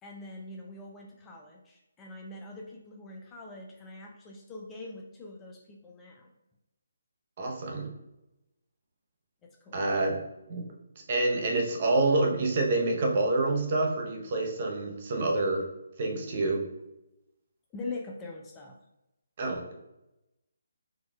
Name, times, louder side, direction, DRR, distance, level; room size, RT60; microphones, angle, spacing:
voice 1, 0.0-6.3 9.4-9.8 17.7-18.8, left 2 dB, 15° left, -1 dB, 0.4 m, -43 dB
voice 2, 7.4-7.9 9.7-10.2 10.5-10.6 11.1-15.6 16.0-16.6 19.4-19.7, right 2 dB, 40° right, 1 dB, 0.8 m, -27 dB
4.1 x 2.3 x 2.4 m, 0.92 s
figure-of-eight pair, 145°, 0 cm